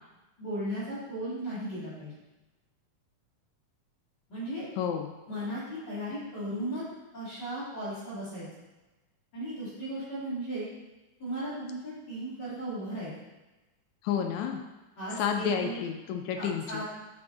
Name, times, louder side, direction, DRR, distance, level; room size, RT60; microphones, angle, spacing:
voice 1, 0.4-2.2 4.3-4.7 5.3-6.8 7.1-8.5 9.3-10.7 11.2-13.1 15.0-15.8 16.4-16.8, right 1 dB, 35° left, -10 dB, 2.7 m, -36 dB
voice 2, 4.8-5.1 14.0-14.6 15.2-16.8, left 7 dB, 80° left, 4 dB, 1.7 m, -30 dB
6.0 x 5.8 x 3.8 m, 1.1 s
omnidirectional pair, 3.7 m